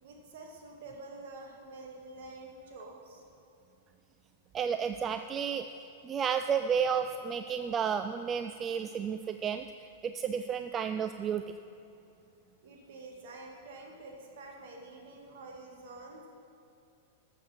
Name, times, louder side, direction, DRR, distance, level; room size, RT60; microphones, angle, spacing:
voice 1, 0.0-3.2 6.7-7.0 12.6-16.3, right 2 dB, 55° right, 0 dB, 2.0 m, -48 dB
voice 2, 4.5-5.7 6.0-9.7 10.0-11.4, right 7 dB, 25° right, 8 dB, 0.3 m, -31 dB
13.0 x 7.3 x 5.7 m, 2.7 s
figure-of-eight pair, 100°, 0 cm